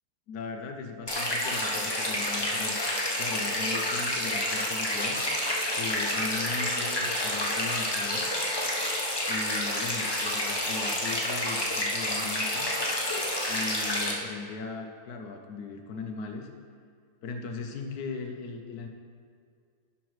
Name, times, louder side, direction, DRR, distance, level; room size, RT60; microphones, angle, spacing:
voice 1, 0.3-2.8 3.2-5.2 5.7-8.3 9.3-12.7 13.5-16.5 17.2-18.9, left 4 dB, 70° left, 4 dB, 0.9 m, -38 dB
sound 1, 1.1-14.1, left 1 dB, 30° left, 0.4 m, -29 dB
11.0 x 5.9 x 3.2 m, 2.2 s
omnidirectional pair, 2.2 m